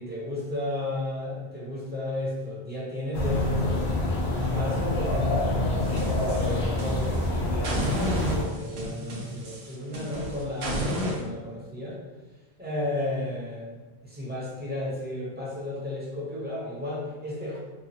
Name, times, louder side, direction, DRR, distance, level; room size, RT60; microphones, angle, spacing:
voice 1, 0.0-3.9 4.3-12.0 12.6-17.6, left 1 dB, 10° right, -6 dB, 0.6 m, -33 dB
sound 1, 3.1-8.4, left 2 dB, 80° left, 1.0 m, -26 dB
sound 2, 5.8-7.2 7.6-11.2, equal, 75° right, 0.9 m, -32 dB
2.9 x 2.3 x 2.7 m, 1.2 s
omnidirectional pair, 1.1 m